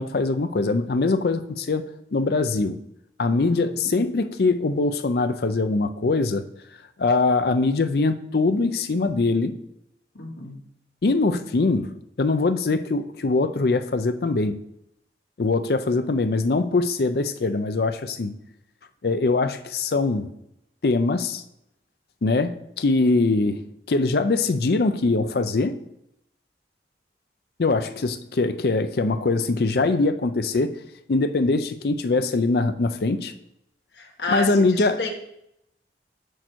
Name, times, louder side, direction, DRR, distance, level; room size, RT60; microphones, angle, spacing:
voice 1, 0.0-2.8 3.2-6.4 7.0-9.5 11.0-14.6 15.4-18.4 19.0-20.3 20.8-21.4 22.2-23.6 23.9-25.8 27.6-30.7 31.1-33.3 34.3-35.0, left 3 dB, 60° left, 10 dB, 0.5 m, -22 dB
voice 2, 10.1-10.6 33.9-35.1, left 3 dB, 75° left, 1 dB, 1.3 m, -31 dB
6.4 x 5.1 x 4.5 m, 0.79 s
head